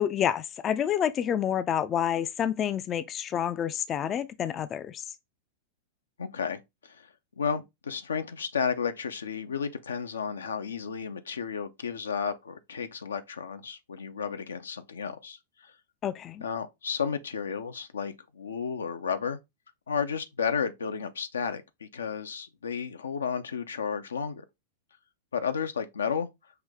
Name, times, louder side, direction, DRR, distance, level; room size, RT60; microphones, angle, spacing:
voice 1, 0.0-5.0 16.0-16.4, left 9 dB, 30° left, 0.4 m, -28 dB
voice 2, 6.2-7.1 7.4-15.7 16.4-19.4 19.9-24.4 25.3-26.3, left 6 dB, 85° left, 0.6 m, -32 dB
5.7 x 2.7 x 3.5 m
hypercardioid pair, 105°, 0 cm